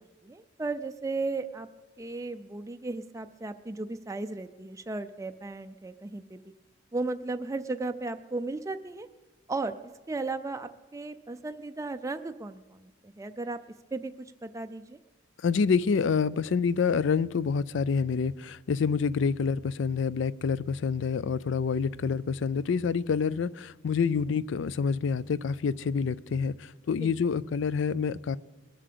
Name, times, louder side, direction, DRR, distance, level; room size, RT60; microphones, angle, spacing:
voice 1, 0.0-1.7 2.0-6.4 6.9-9.1 9.5-9.8 10.1-13.6 13.9-14.1 14.4-15.0 27.0-27.1, right 3 dB, 15° right, 8 dB, 0.4 m, -35 dB
voice 2, 15.4-28.4, left 5 dB, 60° left, 20 dB, 0.4 m, -27 dB
21.0 x 7.4 x 6.7 m, 1.2 s
head